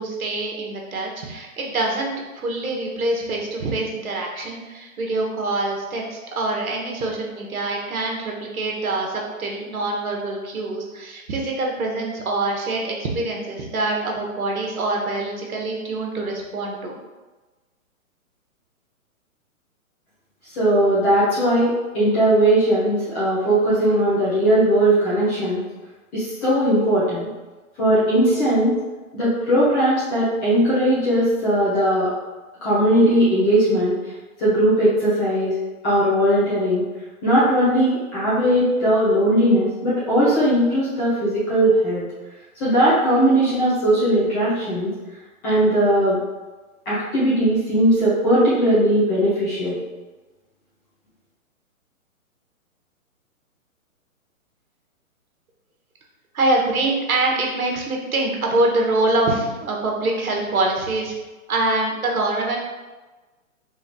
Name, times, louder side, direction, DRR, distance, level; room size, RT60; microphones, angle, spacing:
voice 1, 0.0-17.0 56.3-61.1 61.5-62.6, right 2 dB, 80° right, 0 dB, 1.3 m, -25 dB
voice 2, 20.5-25.6 26.1-27.3 27.8-28.8 29.1-32.1 32.6-34.0 34.4-35.5 35.8-36.8 37.2-42.0 42.6-44.9 45.4-46.2 46.9-49.8, right 1 dB, 15° left, -10 dB, 0.8 m, -19 dB
3.5 x 3.2 x 4.0 m, 1.2 s
hypercardioid pair, 150°, 42 cm